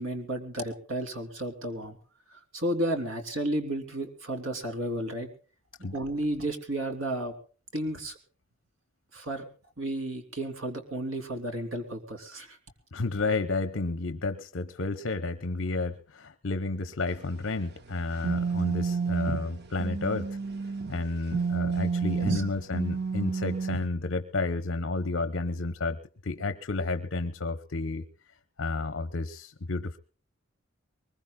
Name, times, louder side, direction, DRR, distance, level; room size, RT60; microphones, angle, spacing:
voice 1, 0.0-2.0 2.3-5.3 5.9-7.3 7.7-8.2 9.1-9.4 9.8-12.6 22.2-22.5, right 1 dB, 80° right, 5 dB, 3.1 m, -32 dB
voice 2, 12.9-20.4 20.9-28.1 28.6-30.0, left 3 dB, 65° left, 10 dB, 0.8 m, -31 dB
sound 1, 17.1-21.0 21.3-23.9, right 5 dB, 50° right, 0.7 m, -30 dB
23.0 x 21.5 x 2.3 m, 0.41 s
head